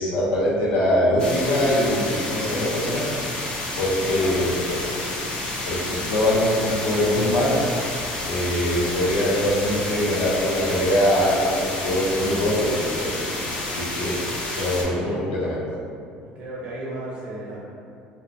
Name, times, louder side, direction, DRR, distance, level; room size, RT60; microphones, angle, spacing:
voice 1, 0.0-3.1 3.8-4.8 5.7-7.6 8.3-14.2 14.5-15.6, left 1 dB, 75° left, -6 dB, 0.6 m, -23 dB
sound 1, 1.2-14.8, left 2 dB, 30° left, 0.4 m, -30 dB
voice 2, 4.1-4.4 5.0-5.2 14.5-15.3 16.1-17.6, right 1 dB, 35° right, -6 dB, 0.6 m, -36 dB
2.6 x 2.0 x 2.6 m, 2.4 s
cardioid pair, 175°, 3 cm